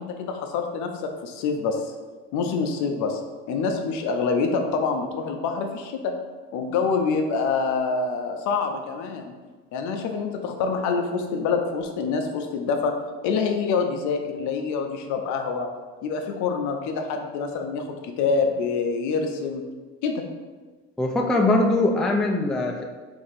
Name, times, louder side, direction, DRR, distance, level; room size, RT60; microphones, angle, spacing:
voice 1, 0.0-1.9 2.3-3.2 3.5-6.1 6.5-9.3 9.7-13.0 13.2-15.7 16.0-19.7 20.0-20.2, left 5 dB, 65° left, 5 dB, 0.5 m, -26 dB
voice 2, 21.0-22.8, left 2 dB, ahead, 1 dB, 0.3 m, -21 dB
2.9 x 2.6 x 4.0 m, 1.4 s
supercardioid pair, 80°, 32 cm